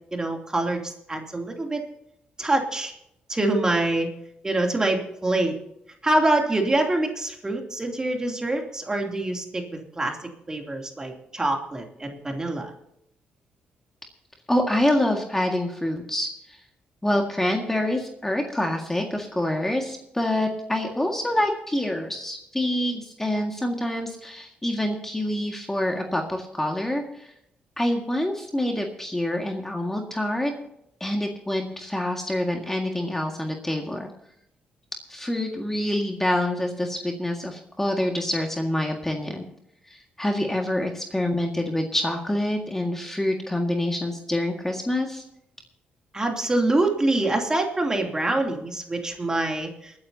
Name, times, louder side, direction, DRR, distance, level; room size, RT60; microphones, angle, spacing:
voice 1, 0.1-1.8 2.4-2.9 3.3-4.1 4.4-5.5 6.0-10.2 10.5-12.7 46.1-49.9, right 2 dB, 20° right, 2 dB, 2.8 m, -25 dB
voice 2, 14.5-16.6 17.0-27.3 27.8-30.5 31.0-34.1 35.1-39.4 39.9-45.2, left 1 dB, 10° left, 2 dB, 1.8 m, -26 dB
28.5 x 9.7 x 2.8 m, 0.78 s
cardioid pair, 80°, 3 cm